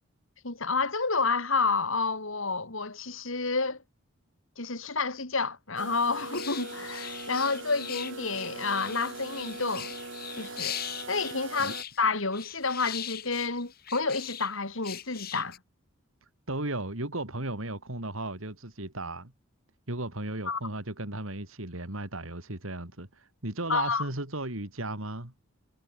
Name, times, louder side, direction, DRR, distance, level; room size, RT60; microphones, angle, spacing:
voice 1, 0.4-3.8 4.6-9.9 10.4-10.8 11.1-15.6 20.5-20.6 23.7-24.0, left 4 dB, 70° left, 2.9 m, -29 dB
sound 1, 5.8-11.8, right 3 dB, 60° right, 6.0 m, -41 dB
sound 2, 6.2-14.5 14.8-15.6, left 11 dB, 45° left, 2.1 m, -40 dB
voice 2, 16.5-19.3 19.9-25.3, right 2 dB, 75° right, 3.6 m, -35 dB
head